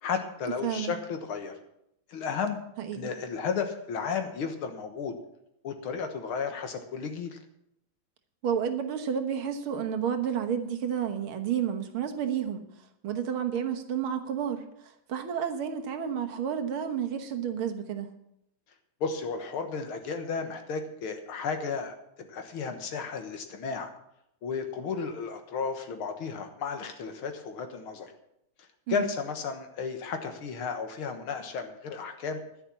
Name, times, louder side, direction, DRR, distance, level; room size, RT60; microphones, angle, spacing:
voice 1, 0.0-1.5 2.1-2.6 2.9-5.2 5.6-7.4 19.0-23.9 24.4-28.1 28.9-32.4, left 5 dB, 80° left, 6 dB, 2.2 m, -33 dB
voice 2, 0.6-1.0 2.8-3.1 8.4-12.7 13.0-14.7 15.1-18.1 28.9-29.1, right 8 dB, 80° right, 6 dB, 2.2 m, -30 dB
11.0 x 10.0 x 7.2 m, 0.80 s
omnidirectional pair, 2.3 m